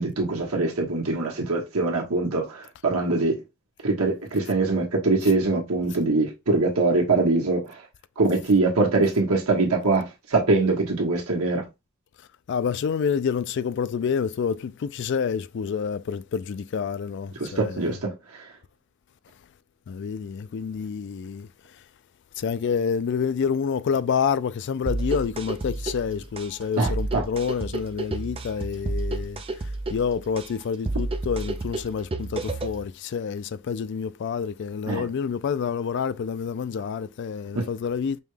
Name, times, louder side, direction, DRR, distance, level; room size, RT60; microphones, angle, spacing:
voice 1, 0.0-3.4 3.8-7.8 8.2-11.6 17.4-18.4 26.8-27.2 34.9-35.1 37.5-37.7, right 3 dB, 80° right, 1.3 m, -23 dB
voice 2, 12.5-18.0 19.9-21.5 22.4-38.2, left 6 dB, 55° left, 0.3 m, -28 dB
sound 1, 24.9-32.9, right 2 dB, 25° right, 0.4 m, -31 dB
5.4 x 2.3 x 3.2 m
head